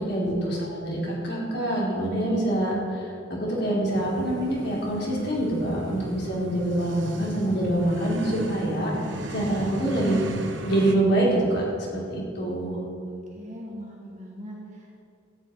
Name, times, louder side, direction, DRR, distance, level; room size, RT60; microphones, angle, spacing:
voice 1, 0.1-3.1 3.4-8.9 9.3-10.2 10.6-11.6 11.9-12.8, right 1 dB, 55° left, -4 dB, 4.4 m, -25 dB
sound 1, 3.9-11.0, right 1 dB, 70° right, 1.3 m, -36 dB
voice 2, 13.3-15.0, equal, 40° right, -2 dB, 2.9 m, -41 dB
13.5 x 7.6 x 9.6 m, 2.5 s
head